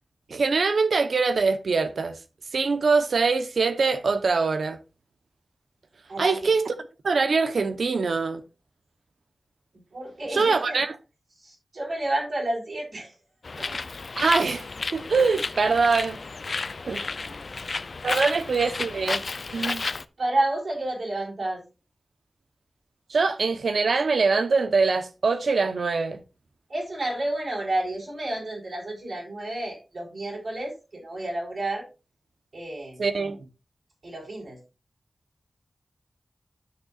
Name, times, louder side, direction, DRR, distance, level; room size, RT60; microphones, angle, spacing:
voice 1, 0.3-2.2 2.5-4.8 6.2-6.7 7.0-8.4 10.3-10.9 14.2-14.7 14.9-16.2 16.9-17.0 18.0-19.2 19.5-19.8 23.1-26.2 33.0-33.4, right 4 dB, 90° right, 0.9 m, -23 dB
voice 2, 6.1-6.5 8.0-8.1 9.7-10.8 11.4-13.2 13.6-13.8 17.2-17.7 18.1-18.3 20.2-21.6 26.7-31.9 32.5-33.0 34.0-34.6, right 1 dB, 75° right, 4.3 m, -31 dB
Bird, 13.4-20.0, left 4 dB, 65° left, 0.4 m, -32 dB
12.0 x 6.6 x 2.4 m
wide cardioid pair, 80°, 0 cm